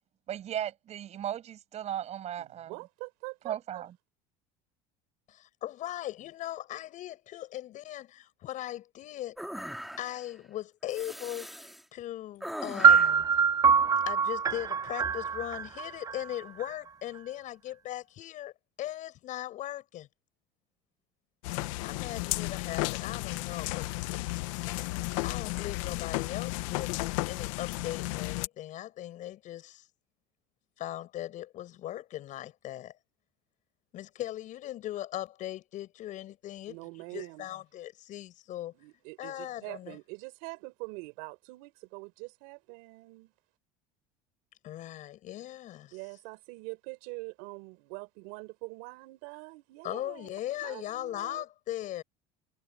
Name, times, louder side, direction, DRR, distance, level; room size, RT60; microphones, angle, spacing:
voice 1, 0.3-2.7 3.4-3.9, right 10 dB, 45° right, 6.3 m, -36 dB
voice 2, 2.4-3.8 36.7-37.5 38.7-43.3 45.9-50.3 50.6-51.4, right 28 dB, 80° right, 4.1 m, -44 dB
voice 3, 5.3-9.4 10.0-13.3 14.1-18.5 18.8-20.1 21.8-24.2 25.2-27.0 27.3-29.9 30.8-32.9 33.9-36.8 37.1-38.7 39.2-40.0 44.6-46.0 49.8-52.0, left 13 dB, 50° left, 7.3 m, -39 dB
sound 1, 9.4-10.3 10.9-11.8 12.4-13.2, equal, ahead, 2.5 m, -40 dB
sound 2, 12.8-16.7, right 6 dB, 25° right, 0.6 m, -24 dB
sound 3, 21.4-28.5, left 21 dB, 85° left, 0.8 m, -33 dB
supercardioid pair, 120°, 16 cm